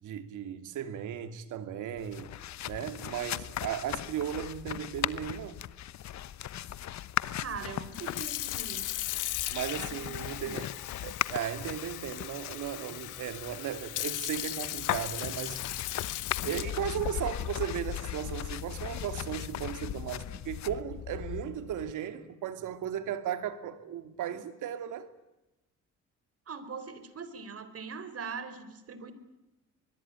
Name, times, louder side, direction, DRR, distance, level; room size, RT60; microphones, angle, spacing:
voice 1, 0.0-2.4 2.6-5.7 9.5-15.6 16.4-25.1, right 9 dB, 85° right, 2.6 m, -36 dB
sound 1, 2.0-21.9, left 12 dB, 65° left, 1.0 m, -38 dB
voice 2, 7.4-8.9 9.7-10.6 26.5-29.1, right 5 dB, 50° right, 4.0 m, -42 dB
Sink (filling or washing) / Fill (with liquid), 7.8-19.4, left 14 dB, 85° left, 1.3 m, -37 dB
25.0 x 21.5 x 9.0 m
cardioid pair, 90°, 30 cm